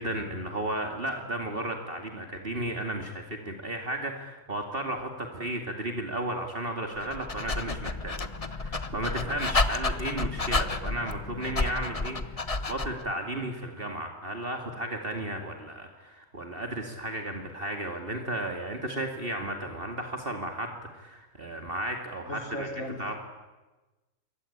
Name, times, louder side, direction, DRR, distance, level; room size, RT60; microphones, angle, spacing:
voice 1, 0.0-8.2 8.5-23.2, right 1 dB, 45° right, 3 dB, 2.6 m, -34 dB
Dog, 7.0-13.1, left 3 dB, 30° left, 1.2 m, -30 dB
voice 2, 22.3-23.2, left 1 dB, 85° left, 6 dB, 4.0 m, -37 dB
27.5 x 24.0 x 8.8 m, 1.2 s
omnidirectional pair, 1.4 m